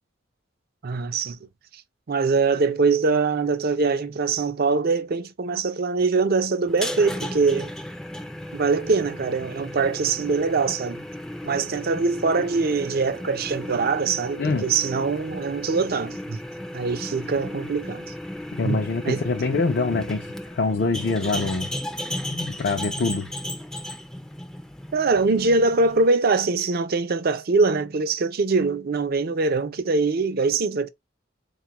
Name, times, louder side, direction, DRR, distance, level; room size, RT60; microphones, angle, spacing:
voice 1, 0.8-1.4 1.7-1.8 2.1-7.7 8.5-11.0 11.4-16.4 16.7-18.1 18.6-19.6 24.9-30.9, right 4 dB, 55° right, 0.5 m, -23 dB
sound 1, 6.7-26.1, left 1 dB, 5° left, 0.4 m, -35 dB
voice 2, 14.4-14.7 18.5-21.7 22.3-23.3, left 3 dB, 55° left, 0.5 m, -25 dB
4.1 x 2.4 x 2.9 m
head